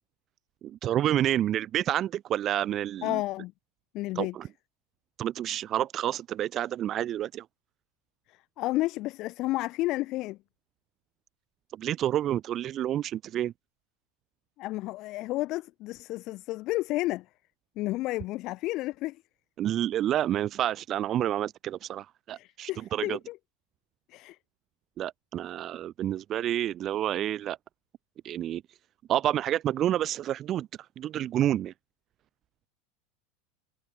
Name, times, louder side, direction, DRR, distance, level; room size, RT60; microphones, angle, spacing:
voice 1, 0.6-3.2 4.1-4.5 5.2-7.4 11.8-13.5 19.6-23.2 25.0-27.6 28.2-28.6 29.1-30.7 31.0-31.7, right 12 dB, 35° right, 0.6 m, -29 dB
voice 2, 3.0-3.5 3.9-4.3 8.3-10.4 14.6-17.2 17.7-19.2 22.3-23.4 24.1-24.4, left 18 dB, 45° left, 1.8 m, -31 dB
supercardioid pair, 140°, 0 cm